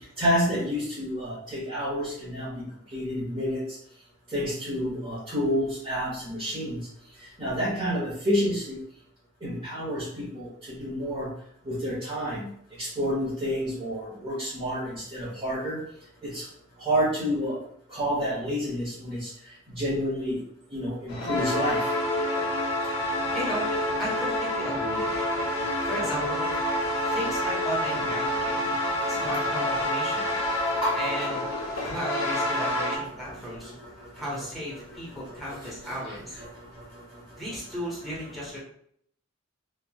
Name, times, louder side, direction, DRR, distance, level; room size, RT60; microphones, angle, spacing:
voice 1, 0.2-2.6 2.9-3.6 4.3-6.8 7.4-8.8 9.4-10.5 10.8-11.3 11.7-12.5 12.8-15.8 16.2-16.4 16.8-17.6 17.9-19.3 19.7-20.4 20.7-21.8 30.7-31.0 33.2-33.5 34.0-34.2 35.1-36.5, equal, 25° right, -10 dB, 0.9 m, -29 dB
sound 1, 21.1-33.0, left 1 dB, 75° left, 0.6 m, -28 dB
voice 2, 23.3-23.7 24.0-25.1 25.8-26.5 27.0-28.6 29.1-30.3 30.9-31.4 31.8-33.8 34.1-36.4 37.4-38.6, equal, ahead, -7 dB, 0.9 m, -35 dB
3.1 x 2.3 x 2.3 m, 0.67 s
head